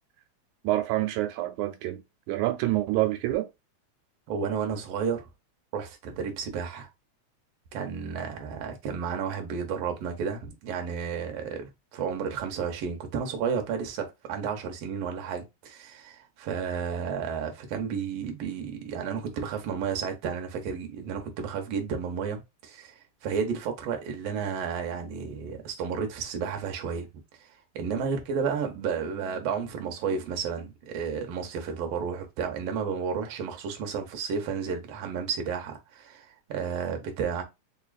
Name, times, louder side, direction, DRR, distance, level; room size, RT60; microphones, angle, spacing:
voice 1, 0.6-2.0 2.3-3.5, right 16 dB, 90° right, 2.0 m, -27 dB
voice 2, 4.3-5.3 5.7-6.9 7.7-37.4, right 6 dB, 70° right, 1.8 m, -32 dB
4.5 x 2.9 x 2.4 m
omnidirectional pair, 3.3 m